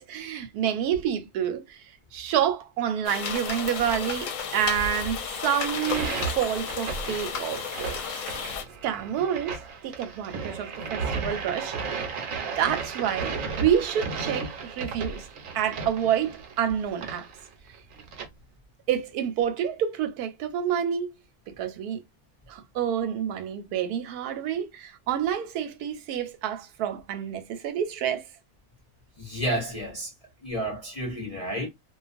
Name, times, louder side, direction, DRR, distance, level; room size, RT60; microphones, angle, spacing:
voice 1, 0.0-1.9 2.1-8.6 8.8-12.1 12.5-15.3 15.5-17.3 18.9-21.1 21.5-22.0 22.5-28.3, right 9 dB, 85° right, 1.1 m, -28 dB
sound 1, 3.0-8.6, left 6 dB, 70° left, 0.9 m, -33 dB
sound 2, 5.6-18.3, right 5 dB, 65° right, 1.0 m, -34 dB
voice 2, 29.2-30.1 30.4-31.7, equal, 45° left, 0.4 m, -30 dB
2.4 x 2.4 x 2.4 m
omnidirectional pair, 1.6 m